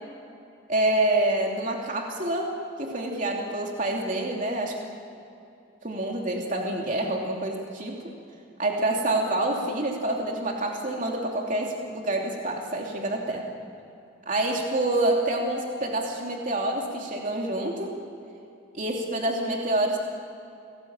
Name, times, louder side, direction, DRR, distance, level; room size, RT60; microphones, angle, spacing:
voice 1, 0.7-4.7 5.8-8.0 8.6-13.5 14.3-17.9 18.7-20.0, right 1 dB, 40° right, 0 dB, 2.9 m, -27 dB
29.5 x 20.0 x 8.8 m, 2.7 s
head